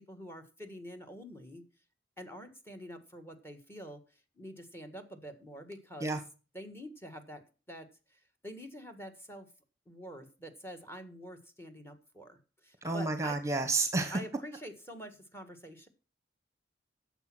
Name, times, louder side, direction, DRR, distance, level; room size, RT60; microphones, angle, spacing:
voice 1, 0.0-1.6 2.2-4.0 4.3-6.2 6.5-9.5 9.9-13.4 14.1-15.9, equal, 15° left, 1.6 m, -47 dB
voice 2, 12.8-14.2, right 3 dB, 15° right, 1.1 m, -30 dB
10.5 x 7.3 x 6.1 m
head